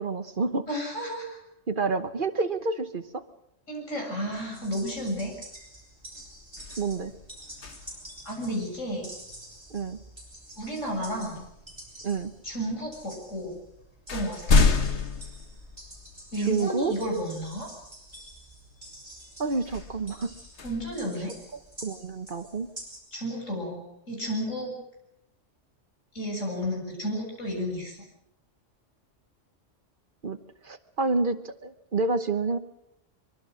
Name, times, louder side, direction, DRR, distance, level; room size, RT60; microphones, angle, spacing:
voice 1, 0.0-0.7 1.7-3.2 6.8-7.1 9.7-10.0 12.0-12.3 16.5-16.9 19.4-20.3 21.8-22.7 30.2-30.4 30.6-32.6, right 3 dB, 45° right, 10 dB, 1.2 m, -28 dB
voice 2, 0.7-1.4 3.7-5.3 8.2-9.1 10.6-11.4 12.4-13.5 14.1-15.0 16.3-17.7 20.6-21.3 23.1-24.7 26.1-28.0, equal, 85° left, 1 dB, 7.7 m, -32 dB
sound 1, 4.3-23.0, right 1 dB, 20° right, 6.5 m, -48 dB
sound 2, 5.5-5.8 6.1-8.2 10.4-10.5 11.4-12.1 13.0-13.1 13.5-16.3 16.9-17.0 19.6-21.8, left 4 dB, 65° left, 1.7 m, -29 dB
24.0 x 23.5 x 6.4 m, 0.81 s
omnidirectional pair, 1.3 m